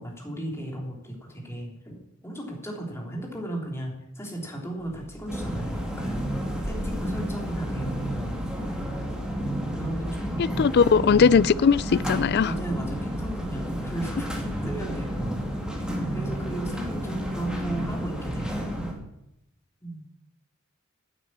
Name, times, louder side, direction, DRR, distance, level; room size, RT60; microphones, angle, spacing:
voice 1, 0.0-8.4 9.7-10.7 12.4-14.3 14.6-15.4 16.1-18.6 19.8-20.1, right 1 dB, 10° left, -1 dB, 3.3 m, -35 dB
sound 1, 4.8-18.5, equal, 35° left, 5.3 m, -44 dB
sound 2, 5.3-18.9, equal, 5° right, 2.2 m, -31 dB
voice 2, 10.4-12.5, left 6 dB, 50° left, 21 dB, 0.4 m, -19 dB
10.5 x 9.2 x 8.6 m, 0.83 s
head